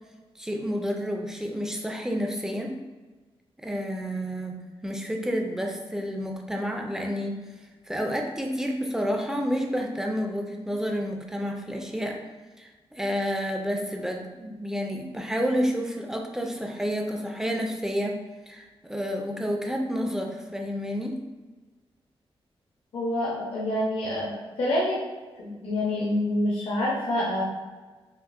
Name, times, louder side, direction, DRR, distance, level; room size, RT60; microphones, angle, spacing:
voice 1, 0.4-2.8 3.6-7.4 7.9-12.2 12.6-21.2, equal, 5° right, 2 dB, 0.4 m, -30 dB
voice 2, 22.9-25.0 25.4-27.4, left 1 dB, 75° left, -6 dB, 0.8 m, -27 dB
5.2 x 2.4 x 2.5 m, 1.3 s
wide cardioid pair, 180°, 10 cm